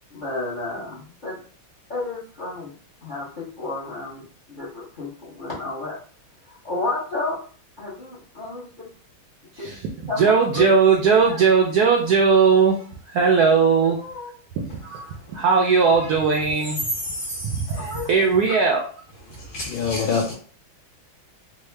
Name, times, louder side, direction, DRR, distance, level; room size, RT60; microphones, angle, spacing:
voice 1, 0.1-1.4 1.9-2.7 3.0-6.0 6.4-7.4 7.8-8.9 9.6-9.7 10.1-10.7 11.2-11.4 14.0-14.3 14.8-15.1 17.7-18.1, left 3 dB, 45° left, -5 dB, 0.6 m, -32 dB
voice 2, 10.2-14.0 14.6-14.8 15.3-16.8 17.5-18.8, right 5 dB, 85° right, 1 dB, 0.8 m, -18 dB
voice 3, 16.9-17.8 19.3-20.3, left 4 dB, 75° left, 0 dB, 1.3 m, -27 dB
3.6 x 2.0 x 3.2 m, 0.43 s
omnidirectional pair, 2.2 m